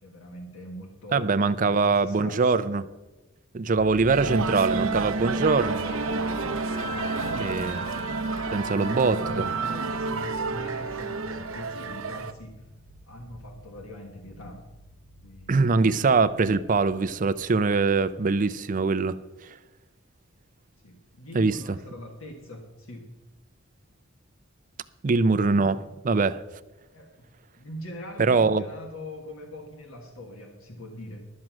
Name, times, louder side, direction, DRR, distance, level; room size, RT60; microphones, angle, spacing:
voice 1, 0.0-2.7 4.1-5.1 6.9-7.7 8.3-12.7 13.1-14.6 15.2-15.9 20.8-23.2 25.5-25.8 26.9-27.3 27.5-31.2, left 1 dB, 80° left, 1.5 m, -42 dB
voice 2, 1.1-2.8 3.5-5.8 7.4-7.8 8.5-9.4 15.5-19.2 19.5-19.6 21.3-21.6 25.0-25.8 26.0-26.4 28.2-28.6, right 4 dB, 40° right, 0.5 m, -23 dB
sound 1, 3.8-18.3, right 1 dB, 50° left, 1.0 m, -47 dB
sound 2, 4.1-12.3, right 4 dB, 85° right, 0.7 m, -30 dB
sound 3, 5.4-11.7, left 1 dB, 20° left, 1.6 m, -40 dB
12.0 x 7.6 x 6.0 m
head